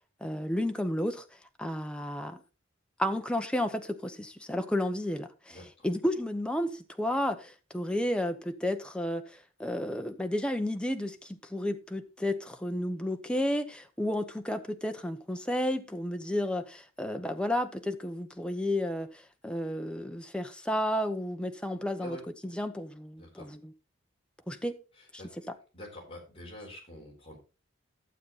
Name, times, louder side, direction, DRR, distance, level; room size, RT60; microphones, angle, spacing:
voice 1, 0.2-1.2 1.6-2.4 3.0-5.6 5.8-22.2 22.4-23.6 24.5-24.7 25.1-25.2, left 1 dB, 5° left, 0.8 m, -32 dB
voice 2, 5.5-5.9 22.0-22.2 23.2-23.5 24.9-25.3 25.7-27.4, left 1 dB, 25° left, 4.3 m, -46 dB
12.0 x 7.4 x 4.1 m
head